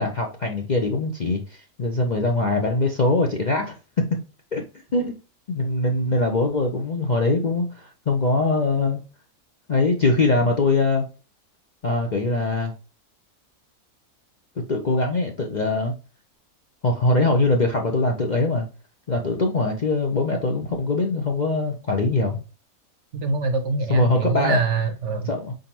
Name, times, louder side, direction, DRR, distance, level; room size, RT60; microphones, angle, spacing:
voice 1, 0.0-4.2 4.5-4.6 4.9-5.1 5.5-9.0 9.7-11.0 11.8-12.7 14.7-15.9 16.8-18.7 19.1-22.4 23.9-24.6 25.3-25.5, left 2 dB, 45° left, 0.6 m, -22 dB
voice 2, 23.1-25.3, right 4 dB, 60° right, 0.9 m, -24 dB
5.0 x 3.8 x 2.8 m
omnidirectional pair, 1.5 m